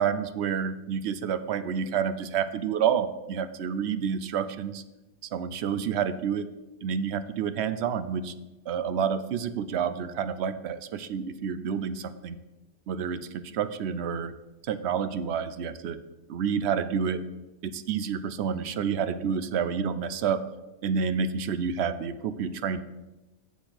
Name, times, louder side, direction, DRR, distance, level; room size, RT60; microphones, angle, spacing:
voice 1, 0.0-4.8 5.3-6.5 6.8-8.3 8.7-12.4 12.9-14.3 14.6-16.0 16.3-17.2 17.6-20.4 20.8-22.8, right 7 dB, 70° right, 12 dB, 0.8 m, -29 dB
7.0 x 6.8 x 5.8 m, 1.0 s
omnidirectional pair, 1.2 m